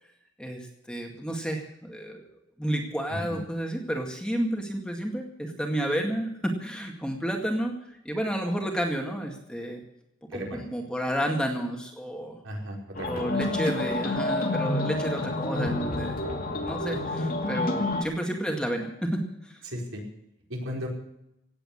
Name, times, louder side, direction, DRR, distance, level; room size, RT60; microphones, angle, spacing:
voice 1, 0.4-2.2 2.6-7.8 8.0-9.8 10.3-12.4 13.1-16.1 16.5-19.6, right 1 dB, 5° left, 1 dB, 2.0 m, -31 dB
voice 2, 10.3-10.6 12.4-13.1 19.6-20.0 20.5-20.9, equal, 70° right, 0 dB, 4.8 m, -35 dB
sound 1, 12.9-18.0, left 2 dB, 40° left, 2.4 m, -29 dB
17.5 x 8.9 x 8.6 m, 0.83 s
head